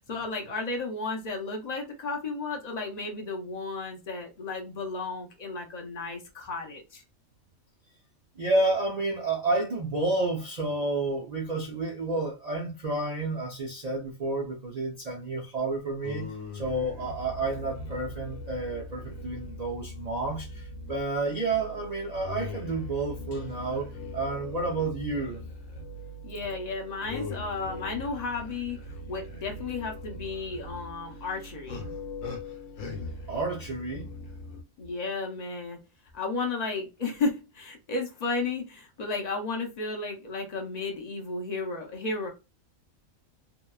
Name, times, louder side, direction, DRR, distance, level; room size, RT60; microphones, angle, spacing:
voice 1, 0.1-7.0 26.2-28.8 29.1-31.9 34.8-35.8 36.1-42.3, left 3 dB, 55° left, 0.4 m, -33 dB
voice 2, 8.4-16.3 16.5-23.9 24.1-25.4 33.3-34.1, right 2 dB, 75° right, 0.3 m, -30 dB
sound 1, 16.0-34.6, left 2 dB, 80° left, 1.1 m, -40 dB
2.8 x 2.2 x 2.3 m
omnidirectional pair, 1.4 m